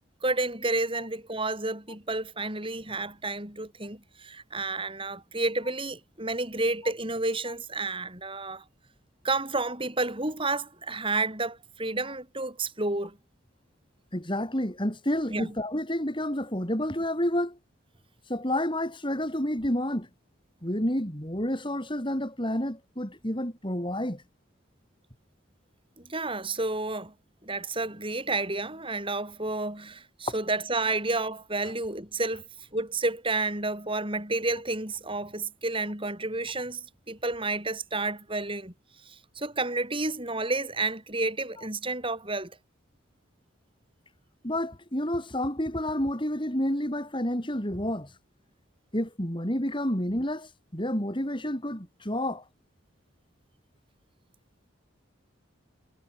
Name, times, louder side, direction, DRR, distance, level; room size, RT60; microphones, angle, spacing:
voice 1, 0.2-8.6 9.2-13.2 15.3-15.5 26.0-27.1 27.4-32.4 32.7-38.7 39.1-42.6, right 2 dB, 25° right, 7.7 m, -30 dB
voice 2, 14.1-17.6 18.3-20.1 20.6-24.2 44.4-48.1 48.9-52.4, left 1 dB, 25° left, 5.6 m, -29 dB
head